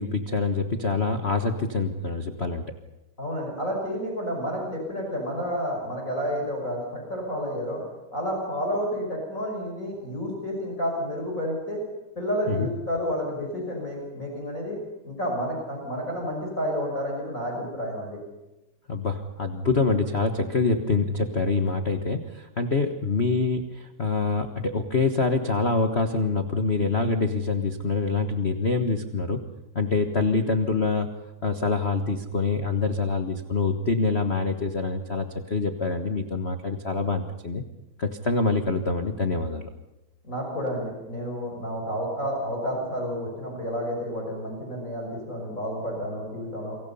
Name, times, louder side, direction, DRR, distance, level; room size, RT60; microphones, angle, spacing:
voice 1, 0.0-2.6 12.5-12.7 18.9-29.4 29.7-31.1 31.4-37.6 38.0-39.7, left 4 dB, 60° left, 6 dB, 0.6 m, -25 dB
voice 2, 3.2-7.8 8.1-11.8 12.2-14.8 15.0-18.2 40.2-46.8, equal, 25° left, 0 dB, 5.9 m, -30 dB
28.5 x 24.5 x 5.6 m, 0.99 s
omnidirectional pair, 3.5 m